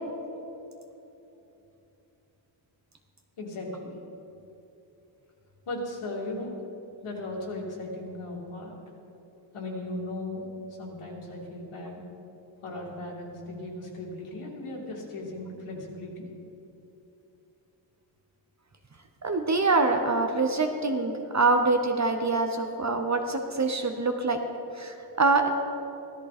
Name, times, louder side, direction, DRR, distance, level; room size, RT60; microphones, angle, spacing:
voice 1, 3.4-3.9 5.7-6.6 7.0-8.8 9.5-12.0 12.6-16.3, left 2 dB, 85° left, -2 dB, 2.9 m, -37 dB
voice 2, 19.2-24.4 24.8-25.5, right 3 dB, 35° right, 5 dB, 0.9 m, -25 dB
16.5 x 13.5 x 4.2 m, 2.9 s
wide cardioid pair, 155°, 49 cm